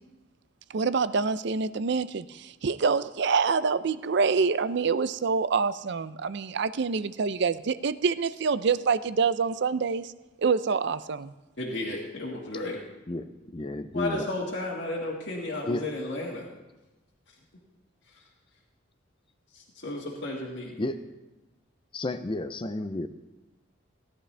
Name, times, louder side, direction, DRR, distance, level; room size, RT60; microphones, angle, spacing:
voice 1, 0.7-10.1 10.4-11.3, right 5 dB, 60° right, 15 dB, 0.5 m, -26 dB
voice 2, 11.6-12.8 13.9-16.5 19.5-20.8, left 2 dB, 65° left, -4 dB, 1.9 m, -33 dB
voice 3, 13.1-14.3 15.7-15.9 20.8-21.0 21.9-23.1, left 2 dB, 25° left, 10 dB, 0.5 m, -32 dB
17.0 x 11.0 x 3.3 m, 1.1 s
head